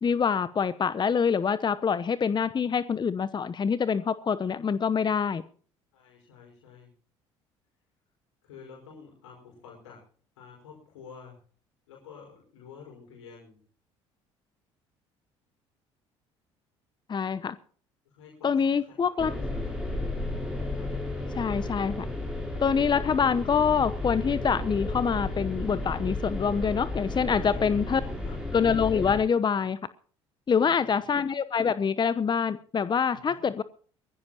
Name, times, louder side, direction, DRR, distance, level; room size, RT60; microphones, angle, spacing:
voice 1, 0.0-5.4 17.1-17.6 18.4-19.3 21.3-22.1 22.6-28.0 28.5-29.8 30.5-33.6, left 6 dB, 30° left, 15 dB, 0.9 m, -25 dB
voice 2, 5.9-6.9 8.4-10.0 10.4-11.4 11.9-13.6 18.0-19.0 19.3-20.1 20.7-20.9 27.3-27.6 28.0-28.4 30.5-31.0 33.1-33.4, left 6 dB, 75° left, -2 dB, 5.1 m, -50 dB
sound 1, 19.2-29.2, left 2 dB, 5° right, 7.1 m, -33 dB
22.5 x 15.0 x 2.9 m, 0.43 s
hypercardioid pair, 55°, 15 cm